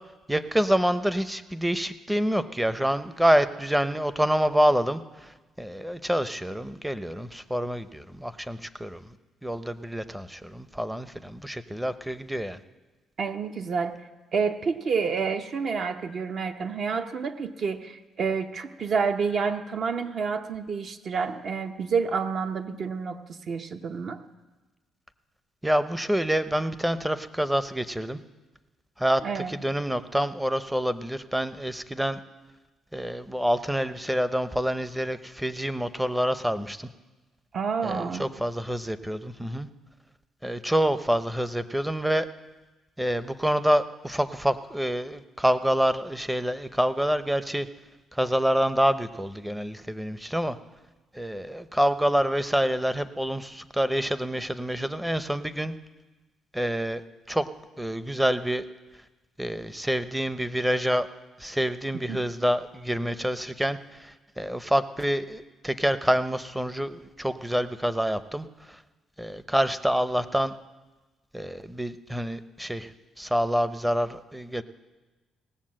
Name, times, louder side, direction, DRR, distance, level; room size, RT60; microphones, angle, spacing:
voice 1, 0.3-9.1 9.4-12.6 25.6-28.2 29.0-32.2 32.9-36.9 37.8-39.7 40.4-42.3 43.0-47.7 48.1-50.6 51.1-55.7 56.5-57.0 57.3-57.5 57.8-58.6 59.4-61.1 61.4-68.8 69.2-70.5 71.3-72.9 73.2-74.6, equal, 5° right, 13 dB, 0.6 m, -27 dB
voice 2, 13.2-14.0 14.3-24.2 29.2-29.5 37.5-38.3 62.1-62.2, right 5 dB, 55° right, 7 dB, 0.9 m, -29 dB
18.0 x 7.2 x 7.6 m, 1.2 s
cardioid pair, 90°, 0 cm